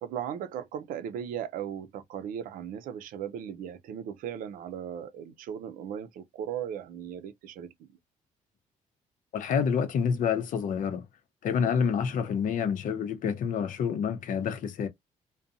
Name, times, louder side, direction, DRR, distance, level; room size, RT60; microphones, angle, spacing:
voice 1, 0.0-7.9, right 9 dB, 80° right, 0.5 m, -37 dB
voice 2, 9.3-11.0 11.4-14.9, left 7 dB, 70° left, 0.7 m, -28 dB
2.6 x 2.2 x 2.4 m
cardioid pair, 100°, 14 cm